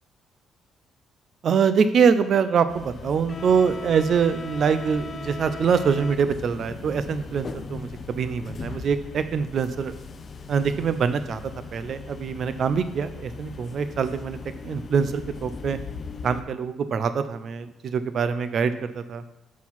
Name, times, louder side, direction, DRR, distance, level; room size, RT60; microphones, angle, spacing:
voice 1, 1.4-9.9 10.5-11.4 11.7-14.4 14.6-15.8 16.2-19.2, right 6 dB, 50° right, 11 dB, 0.5 m, -24 dB
sound 1, 2.7-16.4, left 4 dB, 35° left, 0.5 m, -38 dB
6.2 x 4.5 x 5.6 m, 0.96 s
cardioid pair, 125°, 0 cm